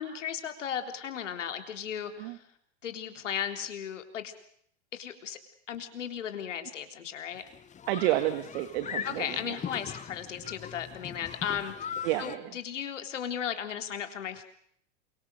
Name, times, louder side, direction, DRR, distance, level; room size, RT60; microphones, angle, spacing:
voice 1, 0.0-2.4 2.8-4.3 4.9-5.4 5.7-7.4 9.0-14.4, left 8 dB, 80° left, 7 dB, 3.7 m, -36 dB
sound 1, 7.3-12.4, left 8 dB, 20° left, 1.1 m, -40 dB
voice 2, 7.9-9.6 12.0-12.5, right 14 dB, 55° right, 10 dB, 2.1 m, -30 dB
28.0 x 24.5 x 6.6 m, 0.67 s
hypercardioid pair, 105°, 36 cm